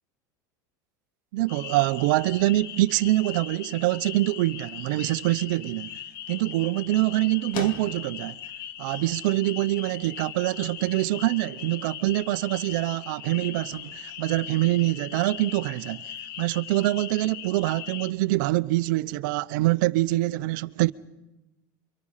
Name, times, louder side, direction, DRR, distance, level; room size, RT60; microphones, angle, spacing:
voice 1, 1.3-5.9 6.3-8.4 8.8-20.9, right 18 dB, 70° right, 0.7 m, -25 dB
sound 1, 1.5-18.1, left 11 dB, 85° left, 1.1 m, -40 dB
sound 2, 5.5-15.3, left 4 dB, 55° left, 2.8 m, -47 dB
28.5 x 24.5 x 5.7 m
supercardioid pair, 125°, 11 cm